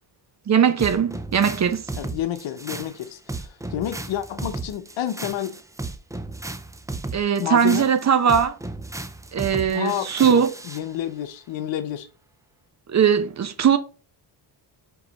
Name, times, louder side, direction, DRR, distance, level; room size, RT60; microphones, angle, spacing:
voice 1, 0.5-1.8 7.1-8.6 9.3-10.5 12.9-13.8, right 7 dB, 35° right, 0.8 m, -20 dB
sound 1, 0.8-10.9, right 2 dB, 5° right, 0.4 m, -34 dB
voice 2, 1.9-5.6 7.4-7.9 9.7-12.1, left 11 dB, 75° left, 0.9 m, -30 dB
4.9 x 4.0 x 5.2 m
cardioid pair, 125°, 45 cm